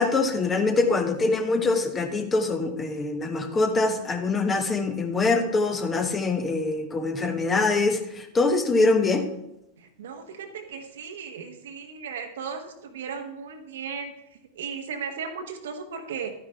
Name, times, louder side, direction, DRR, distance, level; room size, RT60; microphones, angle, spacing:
voice 1, 0.0-9.2, left 3 dB, 20° left, 7 dB, 1.1 m, -24 dB
voice 2, 9.8-14.1 14.5-16.3, right 6 dB, 60° right, 6 dB, 1.2 m, -36 dB
12.0 x 9.6 x 3.5 m, 0.86 s
figure-of-eight pair, 90°, 0 cm